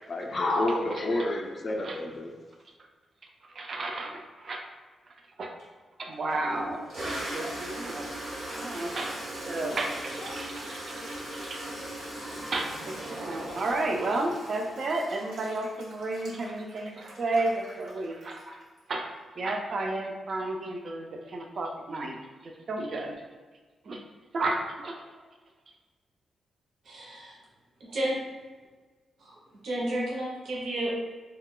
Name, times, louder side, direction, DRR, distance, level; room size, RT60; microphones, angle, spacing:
voice 1, 0.1-2.3 10.3-10.4, left 2 dB, 40° left, 1 dB, 0.3 m, -29 dB
voice 2, 3.5-4.6 5.4-5.5 6.0-6.8 7.0-8.1 8.5-9.2 9.5-11.6 12.5-18.6 18.9-22.2 22.4-23.1 23.8-24.0 24.3-25.0, right 2 dB, 45° right, 2 dB, 0.4 m, -32 dB
Toilet flush, 5.6-5.7 6.3-18.8, right 1 dB, 85° right, 1.1 m, -39 dB
voice 3, 26.9-27.4 27.8-28.2 29.2-29.4 29.6-30.9, right 1 dB, 65° right, -4 dB, 0.7 m, -31 dB
2.2 x 2.2 x 3.6 m, 1.3 s
wide cardioid pair, 160°, 0 cm